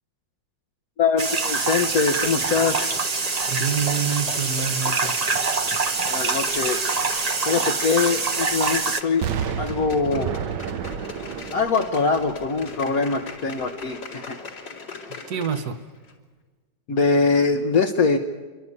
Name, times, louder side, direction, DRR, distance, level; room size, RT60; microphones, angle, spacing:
voice 1, 1.0-3.0 6.1-6.9 7.5-9.3 9.6-10.3 11.5-14.4 16.9-18.2, left 4 dB, 60° left, 2 dB, 1.4 m, -23 dB
sound 1, 1.2-9.0, right 4 dB, 30° right, 0.7 m, -25 dB
sound 2, 2.5-15.8 16.0-16.1, left 4 dB, 90° left, 4.8 m, -40 dB
voice 2, 3.5-5.2 15.3-15.8, right 7 dB, 60° right, 10 dB, 1.7 m, -27 dB
Explosion, 9.2-13.1 13.6-13.7, right 8 dB, 80° right, 1.5 m, -31 dB
29.0 x 12.5 x 9.6 m, 1.4 s
omnidirectional pair, 1.9 m